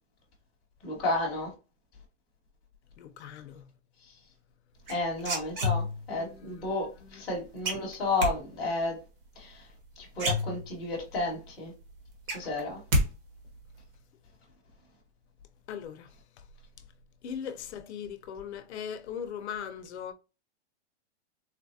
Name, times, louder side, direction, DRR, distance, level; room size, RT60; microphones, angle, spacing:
voice 1, 0.8-1.5 4.1-4.2 4.9-9.0 9.3-9.7 10.0-11.7 12.3-12.8, left 2 dB, ahead, 0.3 m, -32 dB
voice 2, 3.0-3.6 6.1-7.2 15.7-16.1 17.2-20.1, left 8 dB, 70° left, 0.6 m, -40 dB
sound 1, 4.9-6.2 7.6-8.3 9.7-9.8 10.1-11.0 11.4-11.5 11.8-13.1 13.3-13.8, left 1 dB, 50° right, 1.2 m, -29 dB
3.9 x 2.4 x 2.7 m
supercardioid pair, 175°, 35 cm